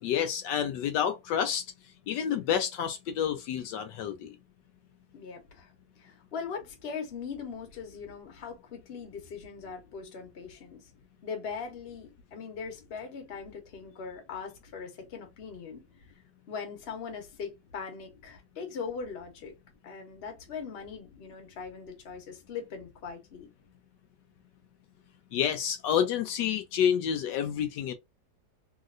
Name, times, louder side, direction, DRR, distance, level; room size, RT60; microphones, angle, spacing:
voice 1, 0.0-1.6 2.1-4.4 25.3-27.9, left 9 dB, 80° left, 1.2 m, -29 dB
voice 2, 5.1-5.7 6.0-10.9 11.2-15.8 16.5-19.5 19.8-23.5, left 6 dB, 45° left, 1.0 m, -40 dB
3.1 x 2.8 x 2.4 m
omnidirectional pair, 1.9 m